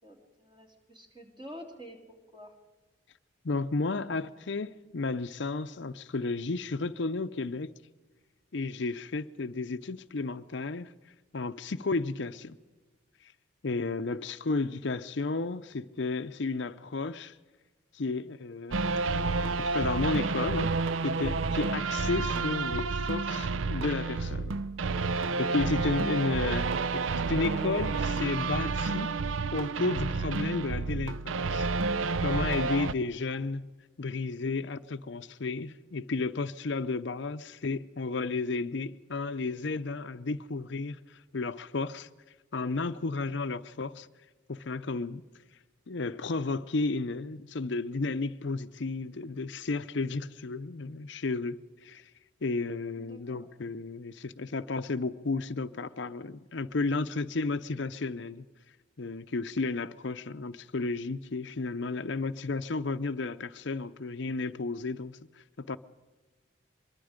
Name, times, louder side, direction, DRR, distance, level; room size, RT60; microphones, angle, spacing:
voice 1, 0.0-2.6 14.1-14.2 33.3-33.4 53.0-53.5, equal, 25° right, 3.0 m, -49 dB
voice 2, 3.4-7.7 8.5-10.9 11.3-12.6 13.2-13.3 13.6-17.4 17.9-18.8 19.6-20.7 21.0-24.6 25.0-26.7 27.3-29.1 29.5-31.7 32.2-33.7 34.0-42.1 42.5-44.1 44.5-45.2 45.9-52.1 52.4-58.5 59.0-65.8, left 3 dB, 60° left, 0.6 m, -33 dB
sound 1, 18.7-32.9, right 4 dB, 75° right, 0.5 m, -30 dB
24.0 x 22.5 x 5.1 m
head